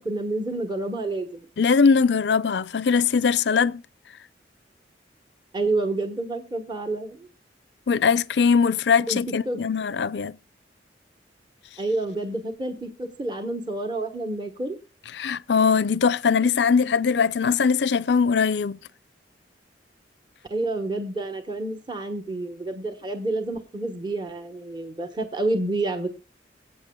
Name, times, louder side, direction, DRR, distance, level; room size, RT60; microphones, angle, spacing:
voice 1, 0.0-1.5 5.5-7.3 9.1-9.2 9.5-9.6 11.8-14.8 20.5-26.1, right 2 dB, 25° right, 1.1 m, -29 dB
voice 2, 1.6-3.8 7.9-10.4 15.1-18.8, left 5 dB, 75° left, 0.5 m, -21 dB
22.0 x 8.5 x 2.3 m
head